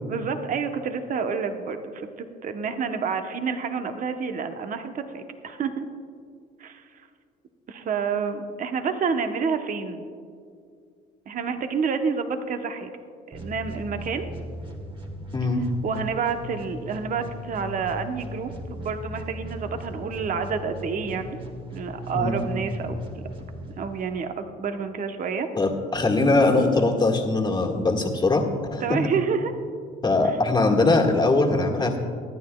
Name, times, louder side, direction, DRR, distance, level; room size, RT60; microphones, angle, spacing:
voice 1, 0.1-5.9 6.6-6.8 7.7-10.0 11.3-12.9 13.3-14.3 15.8-21.4 21.7-23.2 23.8-25.5 28.8-29.5, right 5 dB, 45° right, 7 dB, 0.9 m, -29 dB
sound 1, 13.3-24.2, equal, 25° right, 1.8 m, -38 dB
voice 2, 15.3-15.7 22.1-22.5 25.6-28.5 28.7-29.0 30.0-32.0, left 2 dB, 25° left, 1 dB, 1.7 m, -21 dB
24.0 x 9.5 x 2.3 m, 2.2 s
supercardioid pair, 85°, 19 cm